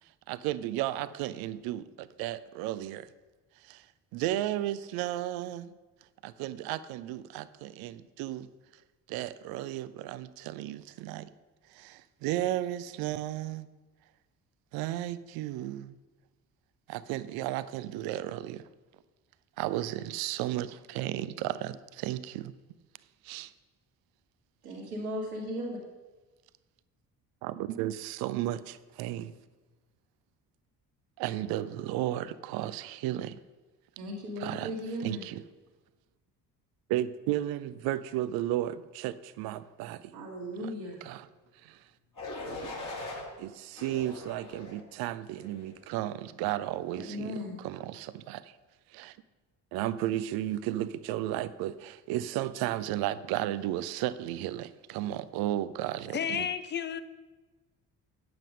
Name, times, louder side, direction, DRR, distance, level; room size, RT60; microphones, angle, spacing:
voice 1, 0.3-3.1 3.6-3.8 4.1-5.7 6.2-8.5 9.1-11.3 11.7-13.7 14.7-15.9 16.9-18.7 19.6-22.5 23.2-23.5 27.4-29.3 31.2-33.4 34.4-34.7 35.0-35.4 36.9-40.1 41.0-41.3 41.6-41.8 43.4-48.5 48.9-49.2 49.7-56.5, right 13 dB, 50° right, 0.6 m, -34 dB
voice 2, 24.6-25.8 34.0-35.2 40.1-41.0 42.5-42.6 46.9-47.6, equal, 70° right, 1.7 m, -37 dB
sound 1, 42.2-43.2 43.8-44.8 45.4-45.8, left 2 dB, 45° left, 3.2 m, -40 dB
voice 3, 56.1-57.0, left 8 dB, 25° left, 0.7 m, -31 dB
8.9 x 7.7 x 5.3 m
figure-of-eight pair, 45°, 47 cm